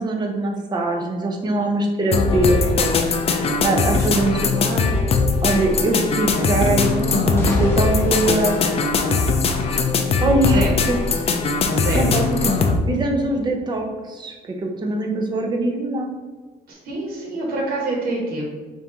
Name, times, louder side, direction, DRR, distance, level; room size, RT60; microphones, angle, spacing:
voice 1, 0.0-4.4 5.4-8.6 10.2-11.3 11.6-16.1, right 2 dB, 25° right, 2 dB, 0.7 m, -23 dB
sound 1, 2.1-12.8, left 4 dB, 35° left, 0.5 m, -20 dB
voice 2, 4.0-5.1 10.4-10.8 11.7-12.1 12.4-12.5 16.7-18.5, right 2 dB, 60° right, -2 dB, 1.3 m, -27 dB
sound 2, 7.3-9.8, equal, 15° left, 0.8 m, -35 dB
4.4 x 2.7 x 3.4 m, 1.3 s
cardioid pair, 110°, 17 cm